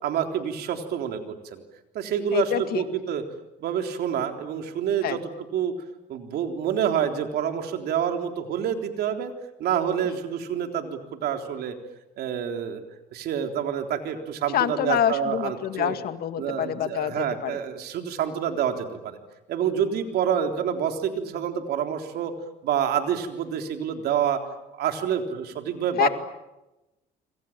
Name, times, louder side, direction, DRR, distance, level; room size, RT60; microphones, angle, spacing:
voice 1, 0.0-1.6 1.9-3.2 3.6-5.2 5.5-5.7 6.1-9.3 9.6-11.7 12.2-12.8 13.1-16.0 16.4-19.2 19.5-22.3 22.6-24.4 24.7-26.1, right 8 dB, 70° right, 5 dB, 3.7 m, -27 dB
voice 2, 2.3-2.8 5.0-5.2 10.0-10.2 14.5-17.6 26.0-26.1, left 10 dB, 65° left, 9 dB, 2.2 m, -26 dB
28.0 x 26.0 x 7.5 m, 0.97 s
cardioid pair, 110°, 17 cm